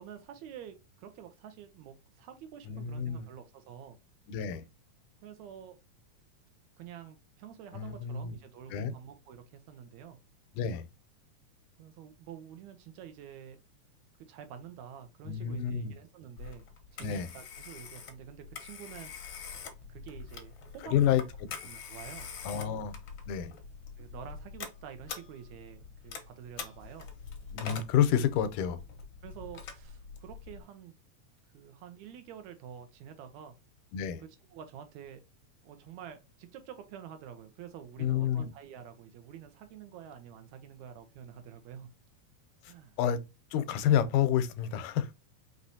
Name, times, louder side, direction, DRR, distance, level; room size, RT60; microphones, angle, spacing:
voice 1, 0.0-4.0 5.2-5.8 6.8-10.2 11.8-13.6 14.2-16.6 16.9-19.1 19.9-21.2 21.6-22.3 22.6-22.8 24.0-27.1 29.2-30.9 31.5-33.6 34.2-35.2 35.6-41.9 42.7-43.0, right 9 dB, 80° right, 1.8 m, -48 dB
voice 2, 2.7-3.3 4.3-4.6 7.7-8.4 8.7-8.9 10.5-10.9 15.3-16.0 17.0-17.3 20.9-21.2 22.4-22.9 23.3-23.5 27.5-28.8 33.9-34.2 38.0-38.5 43.0-43.2 43.5-45.1, left 9 dB, 85° left, 2.1 m, -29 dB
Telephone, 16.4-30.6, left 6 dB, 65° left, 1.2 m, -45 dB
5.4 x 3.1 x 2.6 m
omnidirectional pair, 3.6 m